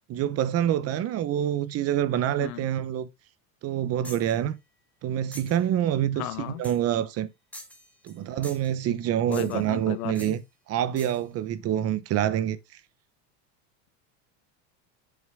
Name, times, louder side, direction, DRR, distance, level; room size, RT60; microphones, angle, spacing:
voice 1, 0.1-3.1 3.6-4.6 5.0-7.3 8.0-10.4 10.7-12.6, right 11 dB, 35° right, 0.9 m, -26 dB
sound 1, 4.0-4.3 5.3-5.6 6.6-6.9 7.5-8.2 8.4-8.8 9.3-9.7 10.1-10.4 11.0-11.2, equal, 5° left, 1.6 m, -45 dB
voice 2, 6.2-6.6 9.3-10.4, left 15 dB, 90° left, 1.0 m, -35 dB
7.3 x 6.2 x 3.5 m
supercardioid pair, 140°, 43 cm